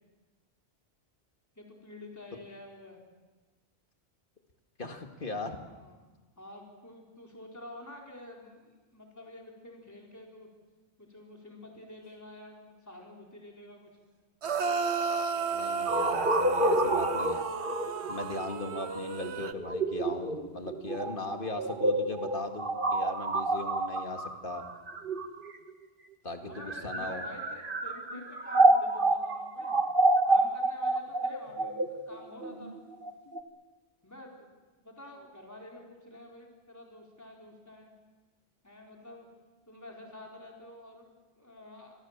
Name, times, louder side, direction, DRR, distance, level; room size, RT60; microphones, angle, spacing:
voice 1, 1.6-3.0 5.7-6.1 6.4-10.5 11.0-13.9 26.5-29.8 30.3-32.9 34.0-34.5 34.8-37.9 38.6-39.3 39.7-42.0, left 1 dB, 15° left, -1 dB, 4.3 m, -49 dB
voice 2, 4.8-5.6 15.5-17.4 18.1-24.7 26.2-27.3, left 2 dB, 55° left, 5 dB, 2.4 m, -38 dB
sound 1, 14.4-19.5, right 5 dB, 90° right, 1.4 m, -33 dB
sound 2, 15.9-25.7 26.5-33.4, right 2 dB, 55° right, 1.9 m, -28 dB
28.5 x 23.0 x 7.4 m, 1.3 s
omnidirectional pair, 1.1 m